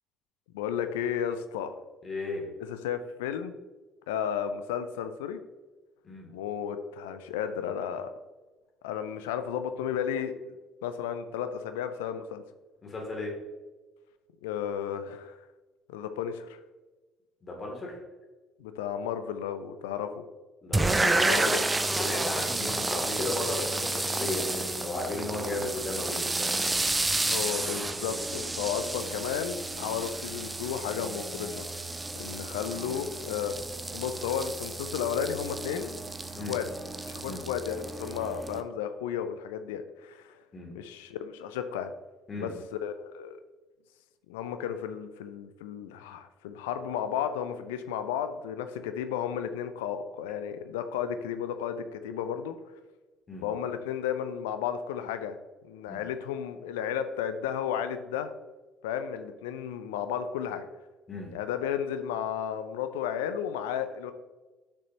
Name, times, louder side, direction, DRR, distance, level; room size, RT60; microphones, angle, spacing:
voice 1, 0.5-1.8 2.6-3.5 4.1-5.4 6.3-8.1 8.8-10.3 10.8-12.4 14.4-15.4 15.9-16.6 18.6-20.2 20.7-21.6 27.3-33.6 33.9-36.0 36.3-36.7 37.0-40.4 40.7-41.9 42.4-42.5 42.8-43.4 44.3-52.6 53.4-55.4 55.6-58.3 58.8-60.7 61.3-64.1, left 8 dB, 70° left, 10 dB, 0.6 m, -33 dB
voice 2, 2.0-2.5 6.0-6.3 12.8-13.3 17.4-18.0 20.6-21.5 22.0-26.5 36.3-36.5 37.3-37.4 40.5-40.7 42.3-42.5 53.3-53.4 55.9-56.0 61.1-61.3, left 2 dB, 40° left, -1 dB, 2.7 m, -35 dB
sound 1, 20.7-38.6, right 2 dB, 15° right, 0.8 m, -31 dB
9.7 x 6.6 x 2.9 m, 1.2 s
figure-of-eight pair, 50°, 0 cm